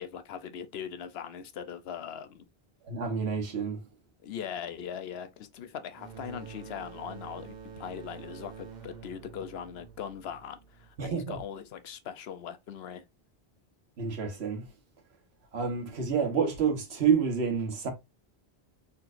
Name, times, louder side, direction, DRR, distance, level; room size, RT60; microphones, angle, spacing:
voice 1, 0.0-2.4 4.2-13.0, left 8 dB, 75° left, 0.9 m, -40 dB
voice 2, 2.8-3.8 11.0-11.4 14.0-14.7 15.5-17.9, right 6 dB, 80° right, 1.4 m, -28 dB
sound 1, 5.9-11.4, right 7 dB, 45° right, 1.1 m, -47 dB
4.2 x 3.9 x 2.5 m
omnidirectional pair, 1.1 m